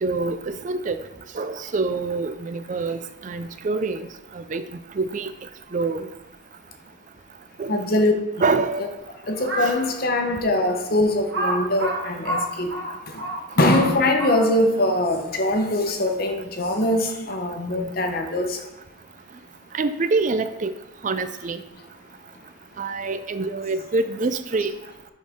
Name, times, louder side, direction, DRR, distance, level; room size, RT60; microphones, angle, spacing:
voice 1, 0.0-1.0 1.3-4.1 4.3-4.6 5.0-5.3 5.7-6.1 7.6-7.8 8.4-9.0 9.6-9.8 19.7-20.7 21.0-21.6 22.8-24.7, right 3 dB, 40° right, 0.4 m, -25 dB
voice 2, 7.7-8.9 9.3-12.7 13.1-13.2 13.6-18.6, left 1 dB, 45° left, 0.9 m, -22 dB
Crow, 9.3-9.8 10.4-10.5 11.3-14.7, right 1 dB, 55° right, 1.5 m, -28 dB
11.0 x 4.3 x 3.6 m
head